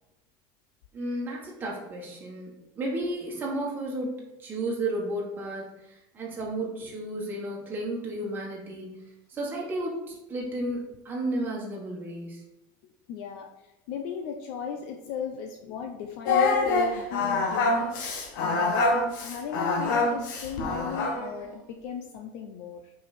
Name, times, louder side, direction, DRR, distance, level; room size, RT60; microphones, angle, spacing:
voice 1, 0.9-9.0 9.3-12.4, right 1 dB, 20° right, -3 dB, 1.5 m, -33 dB
voice 2, 12.8-17.9 18.4-18.9 19.2-22.9, left 7 dB, 55° left, 4 dB, 0.6 m, -37 dB
Singing, 16.3-21.3, left 3 dB, 75° left, 1.4 m, -25 dB
5.8 x 4.8 x 4.3 m, 0.97 s
cardioid pair, 175°, 11 cm